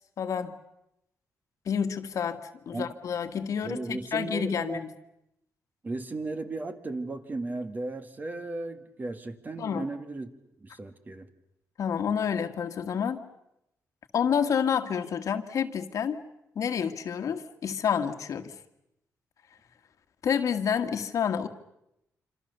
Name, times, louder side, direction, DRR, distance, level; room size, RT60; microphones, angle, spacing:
voice 1, 0.2-0.5 1.7-2.4 2.7-4.9 9.6-9.9 11.8-13.2 14.1-16.2 16.6-18.5 20.2-21.5, left 7 dB, 65° left, 7 dB, 1.8 m, -29 dB
voice 2, 3.6-4.8 5.8-10.3 10.6-11.3, right 2 dB, 30° right, 7 dB, 2.0 m, -35 dB
26.5 x 26.5 x 6.9 m, 0.84 s
cardioid pair, 110°, 6 cm